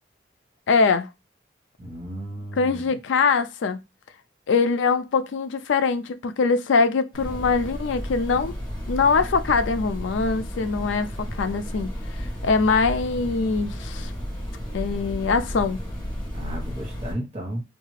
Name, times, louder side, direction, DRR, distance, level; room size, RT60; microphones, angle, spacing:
voice 1, 0.7-1.1 2.5-3.8 4.5-8.5 8.9-11.9 12.2-14.1 14.7-15.8, left 4 dB, 80° left, 0.4 m, -23 dB
voice 2, 1.8-2.9 16.3-17.6, right 1 dB, 30° right, 1.0 m, -34 dB
sound 1, 7.1-17.1, equal, 20° left, 0.9 m, -33 dB
3.5 x 2.4 x 3.1 m
head